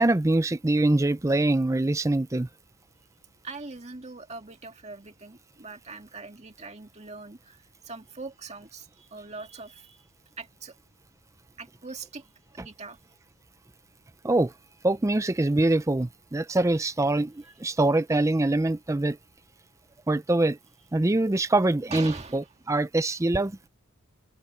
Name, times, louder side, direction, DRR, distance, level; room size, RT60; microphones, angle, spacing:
voice 1, 0.0-2.5 14.2-14.5 14.8-19.2 20.1-20.6 20.9-23.6, right 2 dB, 15° right, 0.4 m, -24 dB
voice 2, 3.4-10.0 10.4-10.8 11.6-12.3 12.5-13.0 21.9-22.4, right 3 dB, 30° right, 2.1 m, -42 dB
open air
head